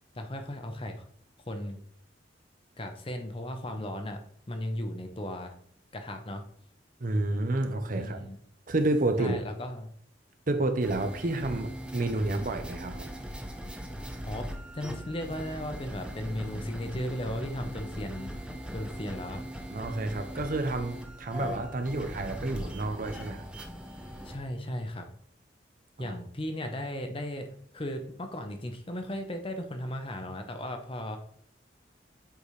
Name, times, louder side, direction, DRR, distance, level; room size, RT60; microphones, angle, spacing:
voice 1, 0.1-1.1 1.5-1.8 2.8-4.2 4.5-5.5 5.9-6.4 7.9-8.4 9.2-9.9 14.2-14.5 14.7-18.3 18.7-19.4 24.2-25.1 26.0-27.5 27.7-31.2, left 1 dB, 30° left, 6 dB, 0.7 m, -36 dB
voice 2, 7.0-8.3 8.7-9.4 10.5-13.1 19.7-23.5 26.0-26.2, right 2 dB, 45° right, 7 dB, 0.7 m, -30 dB
sound 1, 10.8-24.4, equal, 5° right, 0.6 m, -40 dB
8.2 x 4.1 x 3.2 m, 0.62 s
head